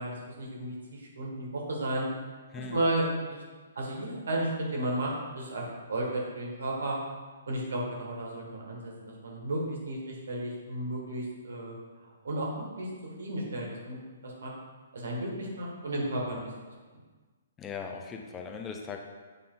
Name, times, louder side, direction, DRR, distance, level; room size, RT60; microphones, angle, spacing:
voice 1, 0.0-2.1 2.7-3.4 3.7-7.0 7.5-11.7 12.2-12.9 13.2-14.5 14.9-16.4, right 1 dB, 65° right, -2 dB, 1.8 m, -33 dB
voice 2, 2.5-2.8 17.6-19.0, left 5 dB, 15° left, 3 dB, 0.7 m, -39 dB
8.2 x 3.9 x 3.9 m, 1.4 s
figure-of-eight pair, 125°, 0 cm